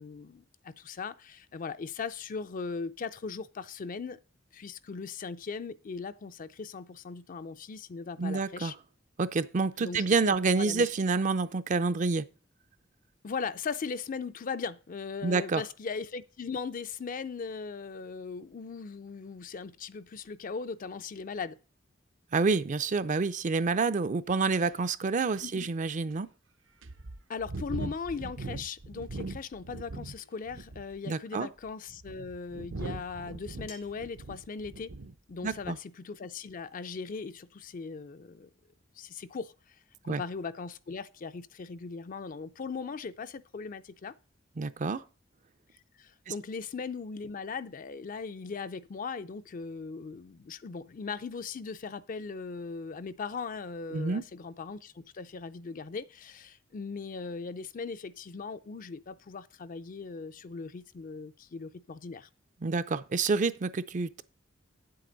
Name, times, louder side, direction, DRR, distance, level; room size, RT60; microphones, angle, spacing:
voice 1, 0.0-4.2 4.5-8.7 9.8-10.9 13.2-21.6 25.4-25.7 27.3-34.9 35.3-38.5 39.0-39.5 40.0-44.1 46.0-62.3, left 5 dB, 45° left, 0.4 m, -39 dB
voice 2, 8.2-8.7 9.2-12.2 15.2-15.6 22.3-26.3 31.1-31.5 35.4-35.8 40.1-40.2 44.6-45.0 53.9-54.2 62.6-64.2, right 4 dB, 40° right, 0.5 m, -28 dB
sound 1, 24.7-24.8 25.4-25.5 26.1-26.2 26.8-30.2 30.5-31.0 31.7-35.1 35.4-35.8, right 2 dB, 70° right, 0.7 m, -40 dB
sound 2, 30.2-30.5 32.1-32.2 33.7-34.1, left 4 dB, 90° left, 2.6 m, -53 dB
9.1 x 7.7 x 3.9 m
head